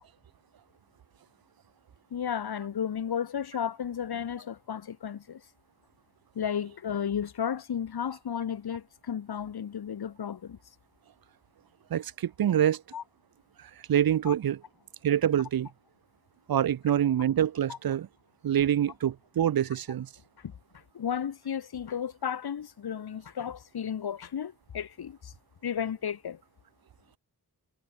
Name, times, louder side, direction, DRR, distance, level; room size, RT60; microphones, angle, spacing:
voice 1, 2.1-5.4 6.3-10.6 12.9-13.0 14.2-14.3 17.7-17.8 20.4-20.5 20.9-25.3 25.6-26.4, left 8 dB, 75° left, 1.0 m, -33 dB
voice 2, 11.9-12.8 13.9-14.6 15.0-15.7 16.5-18.1 18.4-20.1, right 10 dB, 65° right, 0.6 m, -25 dB
cardioid pair, 50°, 38 cm